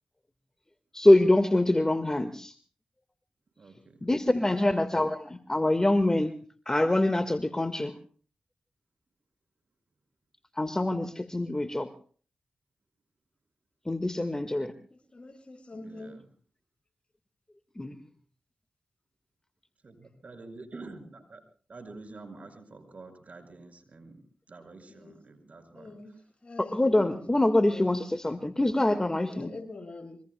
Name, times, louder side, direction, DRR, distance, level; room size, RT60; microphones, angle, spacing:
voice 1, 0.9-2.5 4.0-6.4 6.6-8.0 10.6-11.9 13.8-14.7 17.8-18.0 26.6-29.5, left 1 dB, 20° left, 8 dB, 1.6 m, -25 dB
voice 2, 3.6-4.1 4.4-4.7 15.7-16.3 19.8-21.4 21.7-24.2 24.5-26.2 27.2-27.3, right 3 dB, 60° right, 7 dB, 5.8 m, -48 dB
voice 3, 14.3-14.6 14.9-16.2 24.9-25.1 25.7-26.1 26.4-27.3 27.6-28.1 28.7-29.0 29.3-30.2, left 3 dB, 45° left, 4 dB, 6.4 m, -44 dB
26.5 x 24.5 x 2.2 m, 0.43 s
cardioid pair, 45°, 3 cm